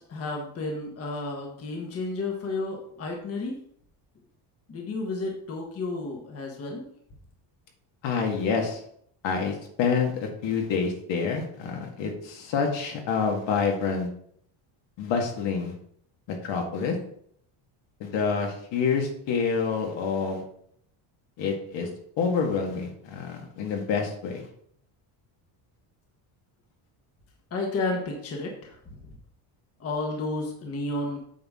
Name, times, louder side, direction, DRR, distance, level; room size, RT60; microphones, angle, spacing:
voice 1, 0.0-3.6 4.7-6.9 27.5-29.1 29.8-31.2, left 2 dB, 30° left, 1 dB, 1.3 m, -32 dB
voice 2, 8.0-8.8 9.2-14.1 15.0-15.7 16.3-17.0 18.0-20.4 21.4-21.9 22.2-24.5, left 5 dB, 60° left, 2 dB, 1.8 m, -27 dB
8.6 x 5.9 x 3.6 m, 0.66 s
cardioid pair, 160°, 49 cm